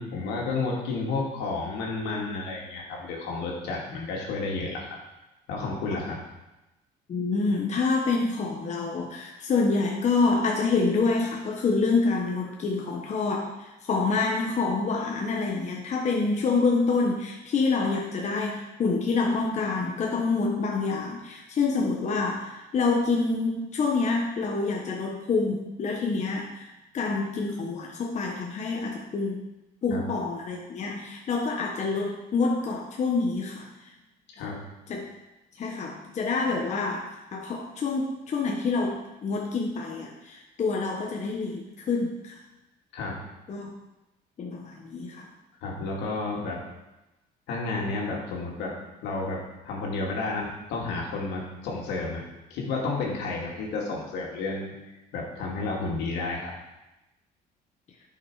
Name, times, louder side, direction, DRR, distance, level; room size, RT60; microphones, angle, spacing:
voice 1, 0.0-5.0 5.5-6.2 29.9-30.0 34.3-34.6 42.9-43.2 45.6-46.6 47.5-48.7 49.0-52.2 52.5-54.7 55.1-56.5, left 3 dB, 85° left, -2 dB, 2.4 m, -31 dB
voice 2, 7.1-13.5 13.9-29.4 29.8-33.7 34.4-34.6 34.9-35.0 35.6-42.4 43.5-43.7 44.4-45.3, left 4 dB, 45° left, 0 dB, 1.1 m, -27 dB
10.0 x 5.9 x 4.7 m, 1.0 s
cardioid pair, 110°, 17 cm